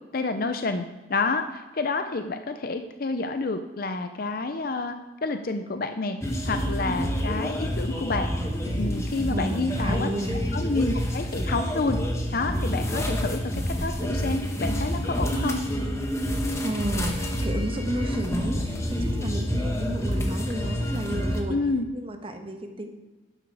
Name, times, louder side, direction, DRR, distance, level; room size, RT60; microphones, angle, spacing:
voice 1, 0.1-5.0 5.2-6.2 6.4-8.3 8.8-10.1 10.5-12.0 12.3-13.4 13.8-15.6 21.5-21.9, left 3 dB, 50° left, 8 dB, 0.6 m, -29 dB
sound 1, 6.2-21.4, equal, 15° left, 1.3 m, -28 dB
voice 2, 9.3-10.4 16.6-21.6 21.9-22.9, right 1 dB, 30° right, 4 dB, 1.3 m, -32 dB
12.0 x 9.8 x 4.8 m, 1.2 s
head